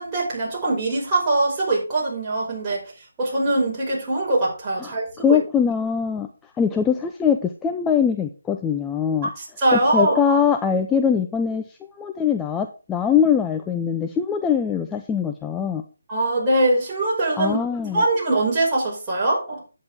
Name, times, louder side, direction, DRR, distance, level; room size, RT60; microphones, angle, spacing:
voice 1, 0.0-2.8 3.2-5.4 9.4-10.4 16.1-17.6 17.9-19.6, right 2 dB, 20° right, -6 dB, 5.7 m, -22 dB
voice 2, 5.2-6.3 6.6-9.3 9.7-11.6 12.0-15.8 17.4-18.0, left 7 dB, 10° left, 5 dB, 0.6 m, -22 dB
10.5 x 8.6 x 3.6 m, 0.33 s
figure-of-eight pair, 155°, 0 cm